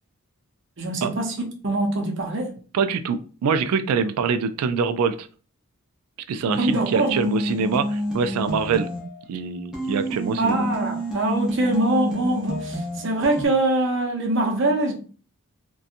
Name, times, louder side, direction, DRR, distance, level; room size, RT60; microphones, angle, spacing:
voice 1, 0.8-2.6 6.6-7.1 10.4-14.9, right 2 dB, 55° right, 0.6 m, -23 dB
voice 2, 2.7-5.3 6.3-8.9 9.3-10.7, right 5 dB, 90° right, 0.3 m, -24 dB
sound 1, 6.5-9.2 9.7-13.5, equal, 5° right, 0.6 m, -29 dB
2.7 x 2.2 x 2.5 m
head